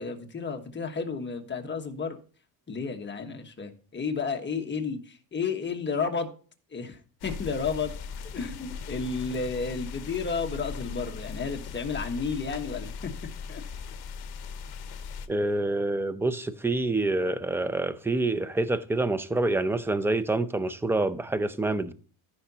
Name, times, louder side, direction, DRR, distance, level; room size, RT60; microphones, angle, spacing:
voice 1, 0.0-2.2 2.7-6.3 6.7-7.9 8.3-13.1 13.5-13.6, left 5 dB, 25° left, 1.3 m, -32 dB
sound 1, 7.2-15.3, left 6 dB, 60° left, 1.0 m, -39 dB
voice 2, 15.3-21.9, right 2 dB, 5° right, 0.5 m, -27 dB
14.5 x 5.9 x 2.9 m
cardioid pair, 125°, 43 cm